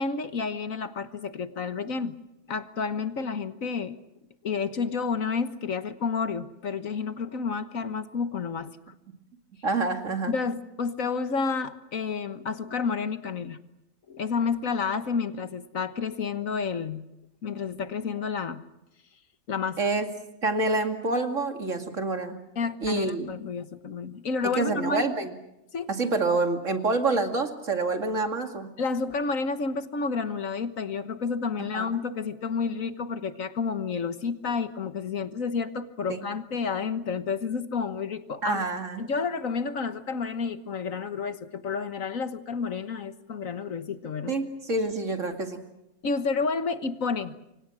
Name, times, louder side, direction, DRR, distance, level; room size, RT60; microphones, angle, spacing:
voice 1, 0.0-2.2 2.5-4.0 4.4-8.8 10.3-13.6 14.1-17.0 17.4-18.6 19.5-19.8 22.6-25.1 25.7-25.9 28.8-38.7 39.0-44.3 46.0-47.3, left 5 dB, 60° left, 11 dB, 1.6 m, -30 dB
voice 2, 9.6-10.3 19.8-20.1 20.4-22.4 22.8-23.3 24.6-25.3 25.9-28.7 31.6-31.9 36.1-36.2 38.4-39.0 44.3-45.6, right 3 dB, 55° right, 5 dB, 2.7 m, -27 dB
29.0 x 25.0 x 6.2 m, 0.89 s
omnidirectional pair, 1.6 m